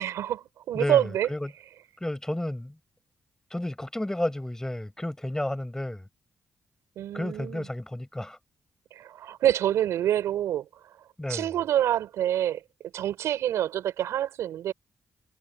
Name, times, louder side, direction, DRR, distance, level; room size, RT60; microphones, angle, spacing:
voice 1, 0.0-1.3 7.0-7.7 9.0-10.7 11.3-12.6 12.9-14.7, right 11 dB, 85° right, 5.4 m, -26 dB
voice 2, 0.7-1.5 2.0-2.8 3.5-6.1 7.1-8.4 11.2-11.5, left 1 dB, 10° left, 6.3 m, -32 dB
supercardioid pair, 55°, 5 cm